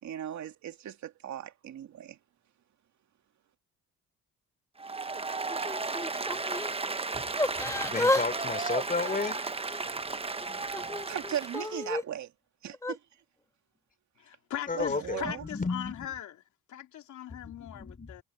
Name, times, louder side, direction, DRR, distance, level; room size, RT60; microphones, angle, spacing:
voice 1, 0.0-2.2 10.1-12.3 12.6-13.0 14.7-15.4, right 10 dB, 65° right, 2.6 m, -38 dB
Applause, 4.8-11.8, right 3 dB, 20° right, 1.1 m, -34 dB
Yell / Crying sobbing, 5.5-6.7 7.4-8.3 8.5-9.9 10.4-12.0 12.7-13.0, left 2 dB, 10° left, 1.6 m, -32 dB
voice 2, 7.6-9.4 14.7-16.1 17.3-18.2, left 4 dB, 30° left, 4.4 m, -33 dB
voice 3, 14.2-16.3 16.7-18.2, left 12 dB, 75° left, 3.1 m, -40 dB
cardioid pair, 90°, 30 cm